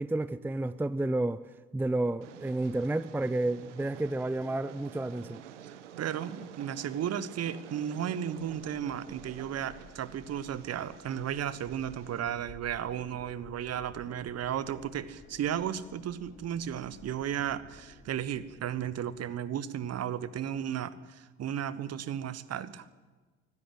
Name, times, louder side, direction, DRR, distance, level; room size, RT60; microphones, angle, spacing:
voice 1, 0.0-1.4 1.7-5.4, right 2 dB, 5° right, 0.6 m, -31 dB
Train, 2.2-12.2, right 9 dB, 75° right, 1.2 m, -49 dB
voice 2, 5.6-22.8, right 9 dB, 45° right, 1.2 m, -34 dB
sound 1, 8.4-19.3, left 3 dB, 35° left, 5.1 m, -55 dB
24.5 x 16.5 x 7.9 m
figure-of-eight pair, 50°, 36 cm